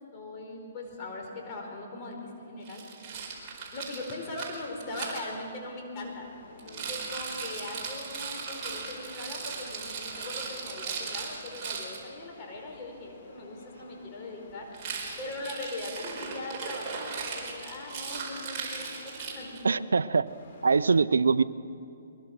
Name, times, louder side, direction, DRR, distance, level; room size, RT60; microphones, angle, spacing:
voice 1, 0.1-2.8 3.7-14.7 15.2-19.8, left 2 dB, 30° left, 0 dB, 4.7 m, -40 dB
Rattle, 2.6-5.2 6.6-12.0 14.7-19.7, right 5 dB, 25° right, 4.7 m, -38 dB
sound 1, 6.0-7.6 8.3-11.5 12.1-15.6 16.2-19.8 20.2-20.9, left 4 dB, 50° left, 3.9 m, -54 dB
voice 2, 19.6-20.3 20.6-21.4, right 4 dB, 90° right, 13 dB, 0.6 m, -23 dB
22.5 x 22.0 x 6.1 m, 2.6 s
hypercardioid pair, 150°, 0 cm